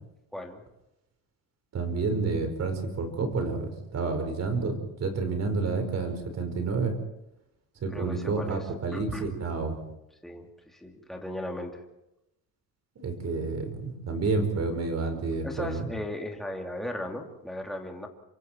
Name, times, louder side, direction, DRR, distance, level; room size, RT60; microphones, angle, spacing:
voice 1, 1.7-6.9 7.8-9.8 12.9-15.9, right 4 dB, 45° right, 7 dB, 4.8 m, -29 dB
voice 2, 7.9-8.7 8.9-9.3 10.2-11.8 15.4-18.1, left 1 dB, ahead, 1 dB, 2.6 m, -37 dB
27.5 x 24.5 x 4.5 m, 0.87 s
cardioid pair, 135°, 37 cm